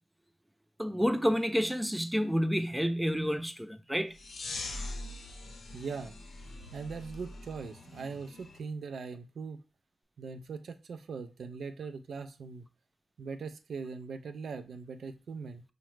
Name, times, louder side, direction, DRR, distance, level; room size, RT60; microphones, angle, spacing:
voice 1, 0.8-4.1, equal, 5° right, 0.4 m, -29 dB
sound 1, 4.1-8.6, left 2 dB, 75° left, 0.6 m, -43 dB
voice 2, 5.7-6.1 6.7-9.6 10.2-12.7 13.2-15.6, right 5 dB, 80° right, 0.3 m, -40 dB
4.6 x 2.1 x 3.1 m
cardioid pair, 55°, 0 cm